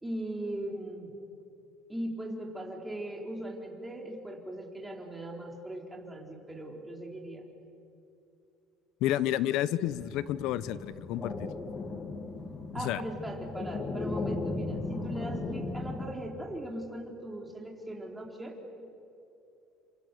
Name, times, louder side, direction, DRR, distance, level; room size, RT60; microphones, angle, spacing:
voice 1, 0.0-1.1 1.9-7.4 12.7-18.6, right 1 dB, 10° right, 0 dB, 3.9 m, -39 dB
voice 2, 9.0-11.5 12.8-13.0, left 12 dB, 70° left, 16 dB, 1.0 m, -30 dB
sound 1, 9.9-16.1, left 3 dB, 25° left, 2.2 m, -36 dB
30.0 x 26.5 x 6.9 m, 2.6 s
cardioid pair, 135°, 0 cm